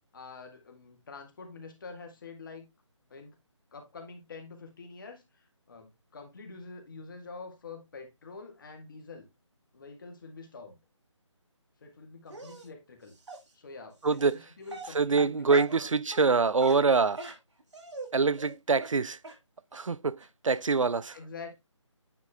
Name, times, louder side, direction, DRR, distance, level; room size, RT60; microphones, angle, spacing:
voice 1, 0.1-2.7 3.1-3.4 3.7-9.3 9.7-10.8 11.8-13.1 13.5-15.9 21.1-21.5, left 4 dB, 40° left, 2.0 m, -46 dB
Dog, 12.3-12.7 13.3-13.4 14.2-14.3 14.7-15.8 16.1-16.3 16.6-18.1 18.4-18.5 18.8-18.9 19.2-19.4 19.7-19.8 20.2-20.3 20.5-20.6, right 3 dB, 65° right, 2.5 m, -40 dB
voice 2, 14.0-14.4 14.9-17.2 18.1-19.2 19.7-20.2 20.4-21.2, right 4 dB, 85° right, 0.5 m, -25 dB
9.7 x 3.7 x 3.5 m
figure-of-eight pair, 160°, 16 cm